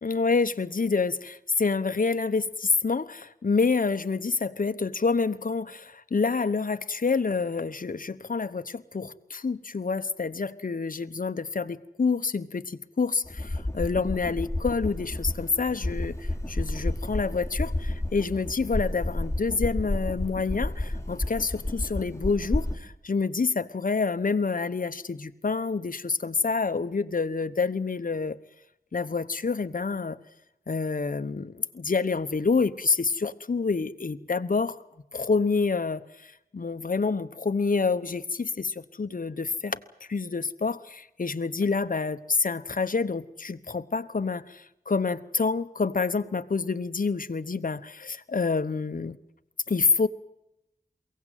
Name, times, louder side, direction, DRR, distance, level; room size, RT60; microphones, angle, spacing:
voice 1, 0.0-28.4 28.9-30.2 30.7-34.8 35.1-39.8 40.1-49.2 49.7-50.1, left 4 dB, 60° left, 10 dB, 1.1 m, -27 dB
sound 1, 13.2-22.8, left 1 dB, 20° left, 4.1 m, -31 dB
23.0 x 17.0 x 9.3 m, 0.86 s
wide cardioid pair, 55°, 16 cm